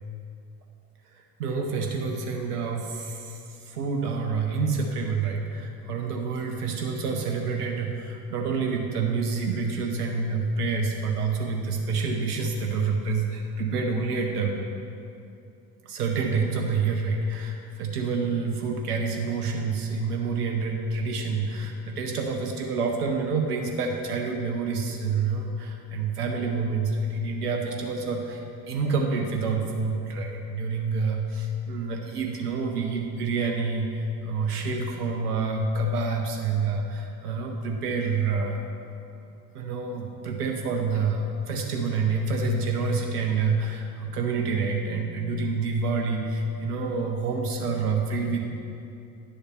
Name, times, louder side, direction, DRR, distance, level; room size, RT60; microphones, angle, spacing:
voice 1, 1.4-14.6 15.8-38.6 39.5-48.4, right 4 dB, 80° right, 3 dB, 0.8 m, -28 dB
10.5 x 6.6 x 4.4 m, 2.6 s
figure-of-eight pair, 55°, 46 cm